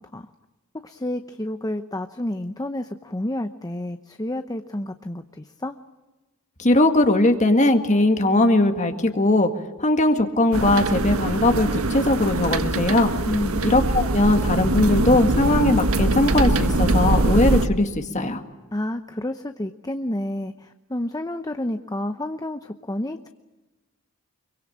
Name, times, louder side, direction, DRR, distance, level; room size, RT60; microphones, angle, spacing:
voice 1, 0.8-5.8 13.2-13.6 18.7-23.3, left 1 dB, 15° left, 8 dB, 0.8 m, -30 dB
voice 2, 6.6-9.5 9.8-13.1 13.6-18.4, left 2 dB, 35° left, 6 dB, 1.9 m, -19 dB
sound 1, 10.5-17.7, right 2 dB, 80° right, 1.5 m, -22 dB
25.5 x 23.5 x 8.7 m, 1.1 s
head